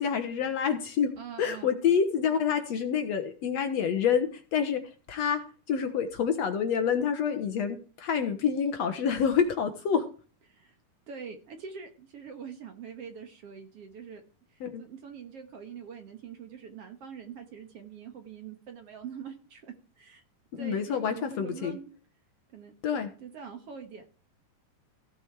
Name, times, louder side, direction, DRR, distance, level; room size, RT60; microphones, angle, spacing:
voice 1, 0.0-1.1 1.4-4.8 5.1-5.4 5.7-10.1 14.6-14.8 20.5-21.8 22.8-23.1, left 7 dB, 60° left, 7 dB, 2.0 m, -27 dB
voice 2, 1.2-1.7 10.5-10.8 11.1-14.2 14.5-20.2 20.6-21.9 22.5-22.7 23.2-24.0, right 7 dB, 55° right, 6 dB, 2.1 m, -44 dB
16.0 x 6.9 x 4.6 m, 0.38 s
omnidirectional pair, 3.8 m